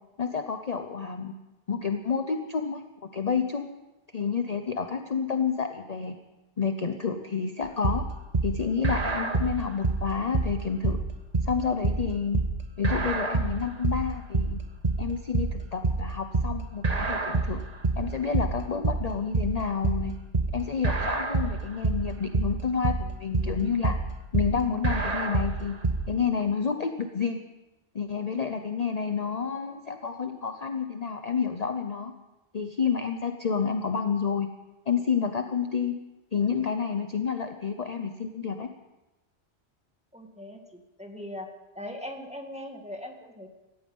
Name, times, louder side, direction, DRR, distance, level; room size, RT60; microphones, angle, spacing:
voice 1, 0.2-1.3 1.7-2.8 3.1-3.7 4.1-6.2 6.6-8.1 8.4-11.0 11.4-12.4 12.8-14.6 15.0-17.6 18.0-20.1 20.5-24.0 24.3-25.8 26.1-27.4 27.9-32.1 32.5-34.5 34.9-35.9 36.3-38.7, left 6 dB, 40° left, 6 dB, 0.8 m, -29 dB
sound 1, 7.8-26.1, right 3 dB, 40° right, 1.3 m, -27 dB
voice 2, 40.1-41.5 41.8-43.5, left 1 dB, 5° right, 3 dB, 1.9 m, -40 dB
18.0 x 14.5 x 5.5 m, 1.1 s
omnidirectional pair, 1.1 m